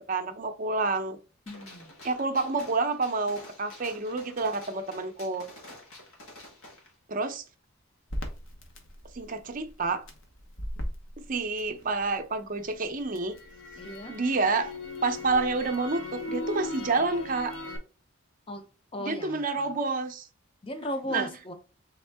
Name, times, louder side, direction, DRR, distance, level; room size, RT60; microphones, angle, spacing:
voice 1, 0.1-1.2 2.0-5.4 7.1-7.4 9.1-10.1 11.3-13.4 14.1-14.7 15.0-17.5 19.0-20.3 21.1-21.3, right 3 dB, 40° right, 0.6 m, -29 dB
Gunshot gunfire, 1.5-6.9, left 1 dB, 85° left, 1.3 m, -49 dB
voice 2, 1.5-2.0 13.8-14.2 18.5-18.7 18.9-19.8 20.6-21.5, left 1 dB, 25° left, 0.7 m, -37 dB
Crackle, 8.1-12.2 12.6-17.8, left 1 dB, 60° left, 1.0 m, -38 dB
3.6 x 3.5 x 3.4 m
head